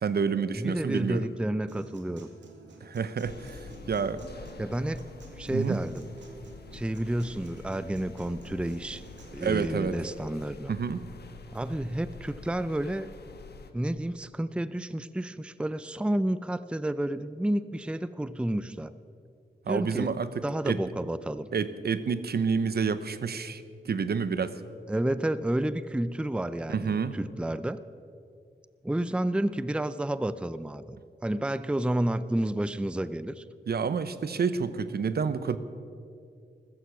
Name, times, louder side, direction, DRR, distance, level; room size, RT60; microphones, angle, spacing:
voice 1, 0.0-1.3 2.8-4.2 5.5-5.8 9.4-10.0 10.7-11.0 19.7-20.3 20.7-20.8 21.5-24.6 26.7-27.2 33.7-35.6, right 6 dB, 60° right, 13 dB, 0.9 m, -29 dB
voice 2, 0.5-2.3 4.6-5.1 5.4-6.1 6.7-9.0 9.3-10.7 11.5-13.1 13.7-18.9 19.7-20.2 20.4-21.5 24.9-27.8 28.8-33.4, right 1 dB, 5° right, 14 dB, 0.5 m, -30 dB
Human voice / Acoustic guitar, 1.7-9.7, right 3 dB, 80° right, 1.9 m, -51 dB
sound 1, 3.2-13.7, left 4 dB, 65° left, 1.2 m, -47 dB
14.5 x 14.0 x 6.2 m, 2.4 s
cardioid pair, 55°, 18 cm